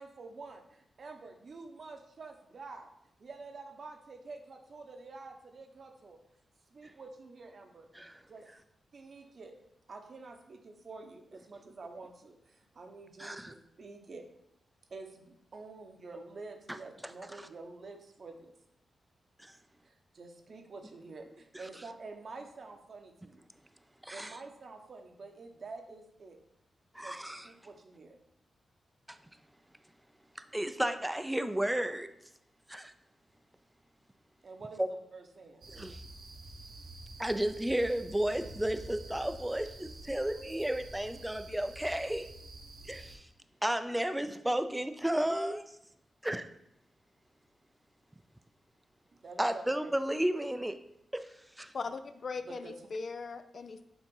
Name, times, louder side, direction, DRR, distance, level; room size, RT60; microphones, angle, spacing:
voice 1, 0.0-2.9 3.2-6.2 6.7-7.9 8.3-8.4 8.9-9.5 9.9-14.3 14.9-18.5 19.8-23.4 24.1-26.4 27.0-27.1 27.4-28.2 34.4-35.6 49.2-49.9 52.3-52.7, right 3 dB, 60° right, 4 dB, 0.9 m, -48 dB
voice 2, 13.2-13.5 16.7-16.8 19.4-19.5 24.0-24.4 26.9-27.5 29.1-29.2 30.5-32.1 32.7-32.9 34.8-34.9 35.7-36.0 37.2-42.3 42.9-43.3 43.6-45.6 46.2-46.5 49.4-50.8 51.1-51.3 51.6-51.7, right 1 dB, 10° right, 9 dB, 0.4 m, -33 dB
sound 1, 35.6-43.2, right 2 dB, 85° right, 1.1 m, -48 dB
voice 3, 51.7-53.8, left 4 dB, 60° left, 10 dB, 0.4 m, -39 dB
7.1 x 2.9 x 5.4 m, 0.79 s
cardioid pair, 60°, 0 cm